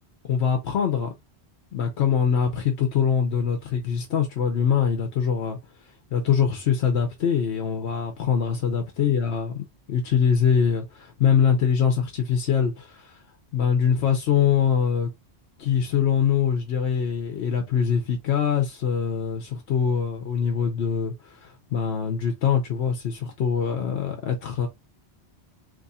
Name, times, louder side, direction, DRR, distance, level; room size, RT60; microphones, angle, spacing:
voice 1, 0.3-1.1 1.7-5.6 6.1-13.2 13.5-15.1 15.6-24.7, left 7 dB, 85° left, 1.0 m, -23 dB
3.0 x 2.4 x 4.1 m
omnidirectional pair, 1.1 m